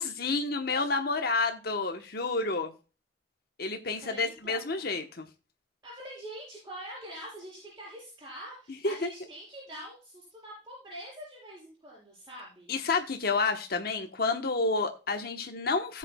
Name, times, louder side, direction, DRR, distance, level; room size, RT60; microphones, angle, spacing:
voice 1, 0.0-2.7 3.6-5.3 8.8-9.1 12.7-16.0, left 3 dB, 60° left, 5 dB, 1.1 m, -29 dB
voice 2, 4.0-5.1 5.8-12.7, equal, 20° right, -7 dB, 6.1 m, -45 dB
17.5 x 7.5 x 2.3 m, 0.33 s
head